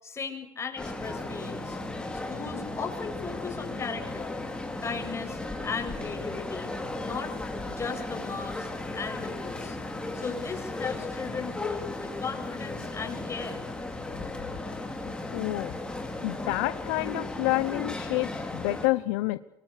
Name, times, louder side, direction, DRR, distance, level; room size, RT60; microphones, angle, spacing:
voice 1, 0.0-4.4 4.8-6.7 7.0-7.4 7.7-9.8 10.1-13.6, left 5 dB, 30° left, 3 dB, 7.2 m, -37 dB
sound 1, 0.8-18.9, left 2 dB, 10° left, 4.7 m, -35 dB
voice 2, 15.3-15.8 16.2-19.4, left 20 dB, 80° left, 14 dB, 0.8 m, -28 dB
24.0 x 23.0 x 6.8 m, 0.85 s
supercardioid pair, 85°, 9 cm